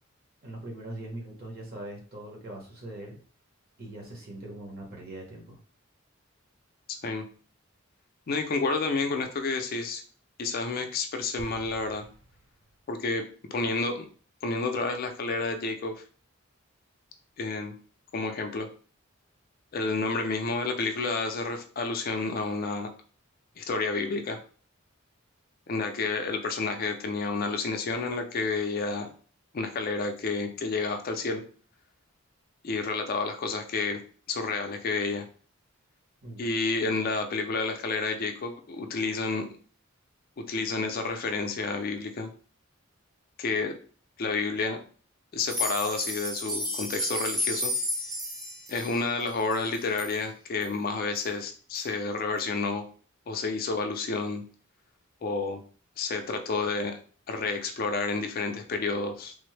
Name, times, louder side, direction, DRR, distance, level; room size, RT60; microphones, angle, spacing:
voice 1, 0.4-3.2 3.8-5.6 36.2-36.4, right 1 dB, 50° right, -1 dB, 1.0 m, -41 dB
voice 2, 8.3-10.0 10.4-12.1 12.9-13.3 13.5-14.1 14.4-16.0 17.4-17.7 18.1-18.7 19.7-22.9 23.6-24.4 25.7-29.1 29.5-31.4 32.6-34.0 34.3-35.3 36.4-39.5 40.4-42.3 43.4-43.7 44.2-44.8 45.3-47.7 48.7-52.8 53.3-54.4 55.2-55.6 56.0-57.0 57.3-59.4, left 3 dB, 45° left, 5 dB, 0.4 m, -30 dB
sound 1, 11.4-13.0, right 1 dB, 80° right, 0.5 m, -50 dB
sound 2, 45.4-50.1 50.6-50.7 51.1-51.2 51.7-51.8, left 1 dB, 20° right, 0.5 m, -32 dB
3.4 x 2.0 x 3.2 m, 0.41 s
head